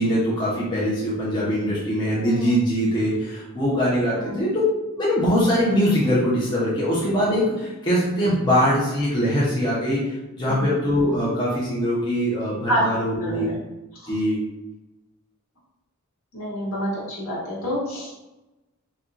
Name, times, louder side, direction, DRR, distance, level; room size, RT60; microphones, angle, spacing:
voice 1, 0.0-4.5 4.9-13.5 14.1-14.4, equal, 20° left, -8 dB, 0.7 m, -22 dB
voice 2, 2.1-2.5 4.1-4.4 10.5-10.7 12.7-13.5 14.0-14.1 16.3-18.1, equal, 70° left, -6 dB, 1.4 m, -28 dB
4.2 x 2.3 x 2.5 m, 1.0 s
head